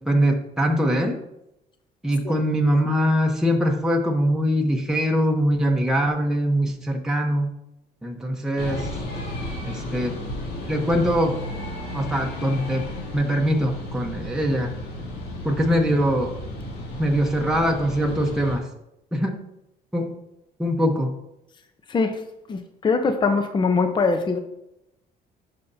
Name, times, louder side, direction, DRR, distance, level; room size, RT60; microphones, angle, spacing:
voice 1, 0.0-1.2 2.0-7.5 8.0-8.9 9.6-10.2 10.6-11.4 11.9-12.9 13.1-14.7 15.4-16.3 17.0-18.7 19.1-19.4 19.9-20.2 20.6-21.1, equal, 5° right, 1 dB, 0.9 m, -22 dB
sound 1, 8.6-18.6, left 1 dB, 70° left, 2.2 m, -33 dB
voice 2, 21.9-22.2 22.5-24.4, left 4 dB, 25° left, 7 dB, 0.7 m, -22 dB
10.5 x 5.8 x 2.7 m, 0.85 s
cardioid pair, 110°, 17 cm